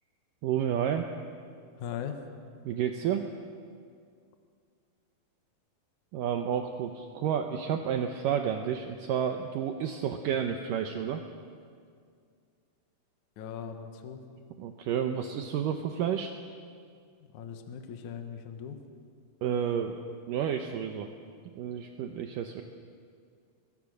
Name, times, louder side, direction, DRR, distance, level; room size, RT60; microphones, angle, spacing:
voice 1, 0.4-1.1 2.6-3.3 6.1-11.2 14.6-16.3 19.4-19.9 20.3-21.1 21.6-22.6, right 8 dB, 70° right, 5 dB, 2.4 m, -30 dB
voice 2, 1.8-2.2 13.4-14.2 17.2-18.8, left 8 dB, 60° left, 6 dB, 2.5 m, -39 dB
26.5 x 22.0 x 6.5 m, 2.2 s
omnidirectional pair, 4.4 m